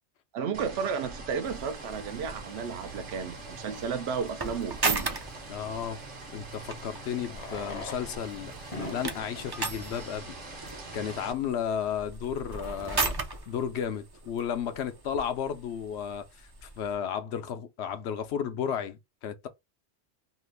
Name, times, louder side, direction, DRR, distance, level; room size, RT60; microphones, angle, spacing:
voice 1, 0.3-5.1, right 6 dB, 70° right, 0.8 m, -33 dB
sound 1, 0.5-11.3, right 3 dB, 50° right, 1.1 m, -44 dB
sound 2, 1.4-16.9, right 3 dB, 30° right, 0.4 m, -38 dB
Fireworks, 3.7-3.8 6.1-6.2 7.2-11.0 11.7-11.8 12.0-12.1 12.3-12.4 13.0-13.2, left 2 dB, 40° left, 0.6 m, -43 dB
voice 2, 5.5-6.0 6.3-10.4 10.9-13.2 13.5-19.5, left 8 dB, 75° left, 0.8 m, -33 dB
2.9 x 2.4 x 3.3 m
omnidirectional pair, 1.2 m